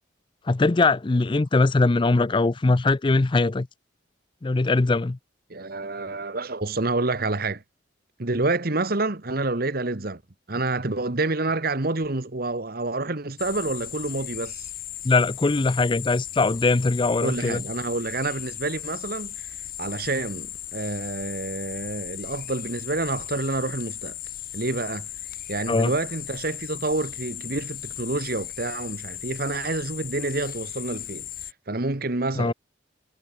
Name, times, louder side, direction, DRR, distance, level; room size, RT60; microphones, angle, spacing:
voice 1, 0.5-3.7 4.4-5.2 15.0-17.6 25.7-25.9 32.4-32.5, left 3 dB, 25° left, 0.4 m, -21 dB
voice 2, 5.5-7.6 8.2-10.2 10.5-14.7 17.2-24.2 24.5-25.1 25.5-31.3 31.7-32.5, right 2 dB, 50° right, 1.4 m, -28 dB
sound 1, 13.4-31.5, left 12 dB, 50° left, 4.7 m, -37 dB
head